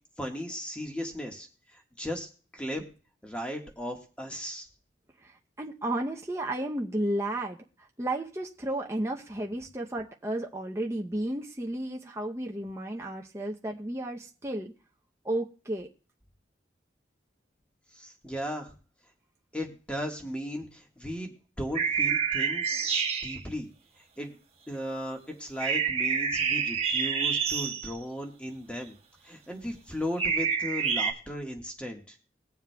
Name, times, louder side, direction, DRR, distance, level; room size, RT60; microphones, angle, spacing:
voice 1, 0.2-2.8 3.2-4.7 17.9-18.7 19.5-23.7 24.2-24.3 24.7-29.0 29.2-32.2, equal, 5° left, 2 dB, 1.5 m, -36 dB
voice 2, 5.2-7.6 8.0-14.7 15.2-15.9, right 1 dB, 15° right, 0 dB, 0.7 m, -33 dB
sound 1, 21.7-23.4 25.6-28.0 30.2-31.1, right 6 dB, 35° right, 1.2 m, -28 dB
21.5 x 7.2 x 2.3 m, 0.39 s
head